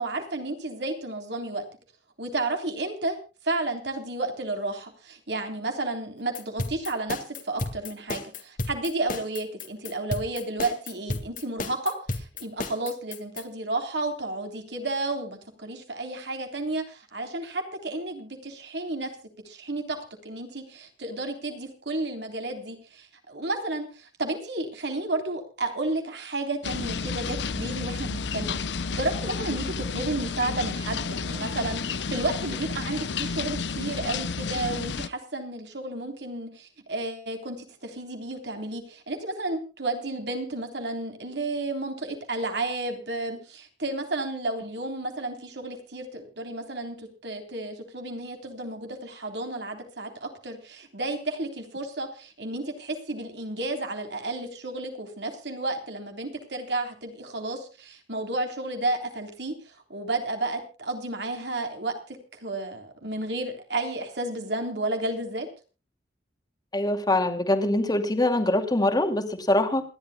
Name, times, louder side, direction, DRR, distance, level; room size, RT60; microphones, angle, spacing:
voice 1, 0.0-1.6 2.2-3.2 3.4-19.1 19.4-59.5 59.9-65.5, right 2 dB, 70° right, 5 dB, 3.5 m, -32 dB
sound 1, 6.4-13.4, left 2 dB, 45° left, 2.1 m, -33 dB
sound 2, 26.6-35.1, left 5 dB, 75° left, 0.8 m, -31 dB
voice 2, 66.7-69.8, left 1 dB, 25° left, 6 dB, 2.3 m, -23 dB
28.0 x 11.5 x 2.2 m, 0.33 s
head